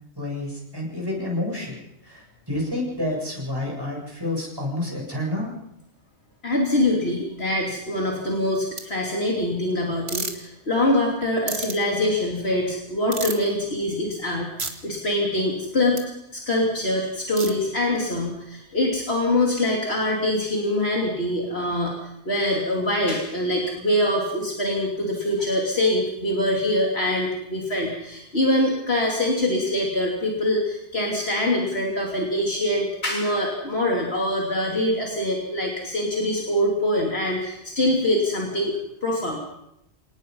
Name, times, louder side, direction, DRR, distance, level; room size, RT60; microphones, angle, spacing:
voice 1, 0.2-5.5, left 1 dB, 20° right, -1 dB, 7.7 m, -29 dB
voice 2, 6.4-16.0 16.3-21.9 22.2-39.5, left 1 dB, 65° left, -2 dB, 3.4 m, -24 dB
sound 1, 8.8-8.9 10.1-10.3 11.5-11.7 13.1-13.5 14.6-14.7 16.0-16.1 17.4-17.5, right 3 dB, 65° right, 2.4 m, -29 dB
27.0 x 19.0 x 5.6 m, 0.82 s
omnidirectional pair, 1.1 m